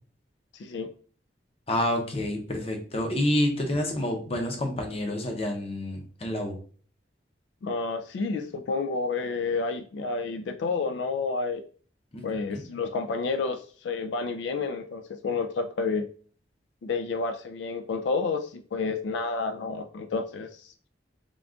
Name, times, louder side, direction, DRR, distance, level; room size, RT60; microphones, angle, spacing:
voice 1, 0.6-0.9 7.6-11.6 12.2-16.1 16.8-20.7, left 4 dB, 85° left, 8 dB, 0.3 m, -30 dB
voice 2, 1.7-6.6 12.1-12.6, left 1 dB, 35° left, 3 dB, 0.7 m, -28 dB
3.7 x 2.3 x 3.6 m, 0.43 s
head